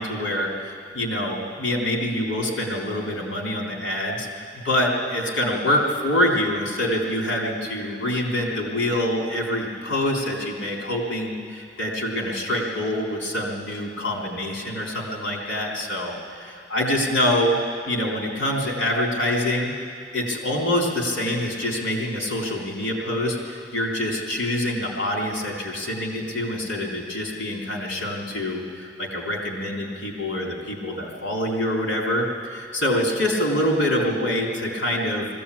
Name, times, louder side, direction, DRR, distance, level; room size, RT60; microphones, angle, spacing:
voice 1, 0.0-4.3 4.6-17.5 17.9-19.7 20.1-35.3, left 1 dB, 85° left, -1 dB, 3.8 m, -25 dB
20.0 x 15.5 x 8.6 m, 2.2 s
head